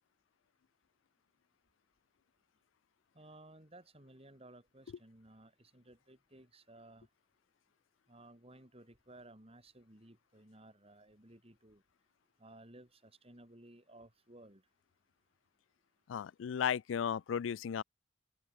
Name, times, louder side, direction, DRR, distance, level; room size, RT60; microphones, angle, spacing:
voice 1, 3.1-7.1 8.1-11.8 12.4-14.6, right 1 dB, 30° right, 5.0 m, -57 dB
voice 2, 16.1-17.8, left 8 dB, 75° left, 0.4 m, -35 dB
open air
head